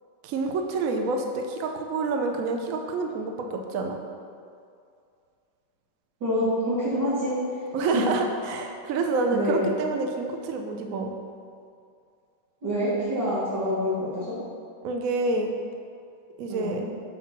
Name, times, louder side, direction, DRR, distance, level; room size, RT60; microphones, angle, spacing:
voice 1, 0.2-4.0 7.7-11.1 14.8-15.5 16.4-16.8, right 3 dB, 75° right, 3 dB, 0.7 m, -28 dB
voice 2, 6.2-7.4 7.9-8.0 9.3-9.6 12.6-14.3 16.5-16.9, equal, 55° right, -14 dB, 2.7 m, -26 dB
6.6 x 4.8 x 6.0 m, 2.4 s
omnidirectional pair, 2.3 m